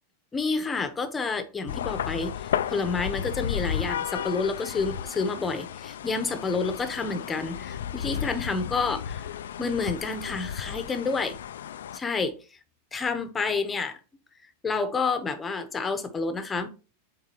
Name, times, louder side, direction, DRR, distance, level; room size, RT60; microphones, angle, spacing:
voice 1, 0.3-9.3 9.6-11.3 11.9-12.4 12.9-14.0 14.6-16.7, left 4 dB, 15° left, 1.0 m, -29 dB
sound 1, 1.7-12.0, left 9 dB, 90° left, 0.3 m, -33 dB
7.4 x 4.5 x 3.0 m
supercardioid pair, 140°, 0 cm